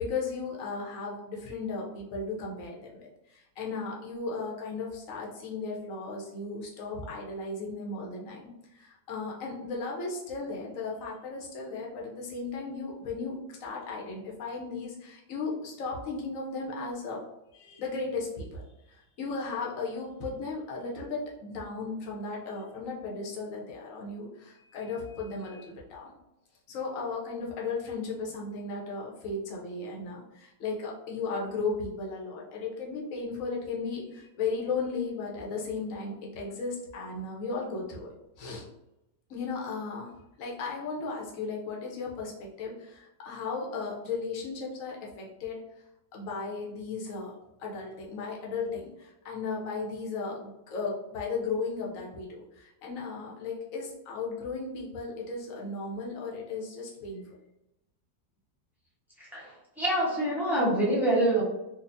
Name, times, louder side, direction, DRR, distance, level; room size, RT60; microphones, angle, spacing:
voice 1, 0.0-8.5 8.7-17.2 17.5-26.1 26.7-38.1 38.4-38.6 39.3-40.1 40.4-45.6 46.1-47.3 47.6-57.2, left 4 dB, 55° left, -2 dB, 1.0 m, -35 dB
voice 2, 59.8-61.4, right 1 dB, 5° right, -7 dB, 0.4 m, -25 dB
4.0 x 2.5 x 2.6 m, 0.88 s
omnidirectional pair, 2.0 m